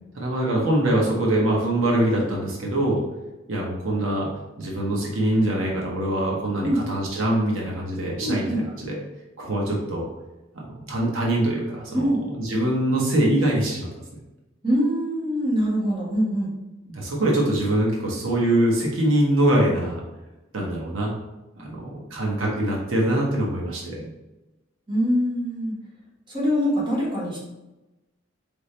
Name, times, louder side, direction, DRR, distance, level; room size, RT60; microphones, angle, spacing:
voice 1, 0.1-3.0 3.5-4.3 4.6-8.5 8.8-9.0 9.4-10.1 10.5-13.9 16.9-20.0 20.5-21.1 21.6-24.1, right 1 dB, 90° right, -2 dB, 1.1 m, -23 dB
voice 2, 8.2-8.6 11.9-12.2 14.6-16.5 24.9-25.7 26.3-27.4, equal, 25° right, -5 dB, 1.4 m, -23 dB
4.1 x 3.5 x 3.2 m, 1.0 s
head